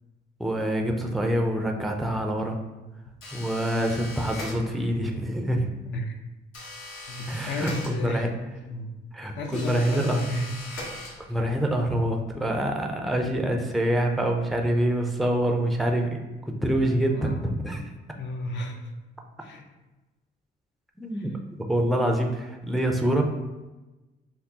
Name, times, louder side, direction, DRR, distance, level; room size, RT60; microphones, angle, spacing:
voice 1, 0.4-2.6 3.3-5.7 7.3-8.3 9.1-10.3 11.3-16.2 16.5-17.9 21.0-21.3 21.7-23.2, right 1 dB, ahead, 3 dB, 0.4 m, -26 dB
sound 1, 3.2-5.0 6.5-8.4 9.5-11.6, left 1 dB, 85° left, 1.0 m, -40 dB
voice 2, 5.8-6.2 7.1-8.3 8.6-8.9 9.4-10.5 17.1-17.4 18.2-18.8 19.4-19.6, left 2 dB, 70° left, 3 dB, 0.6 m, -33 dB
5.8 x 2.0 x 2.7 m, 1.1 s
cardioid pair, 90°, 20 cm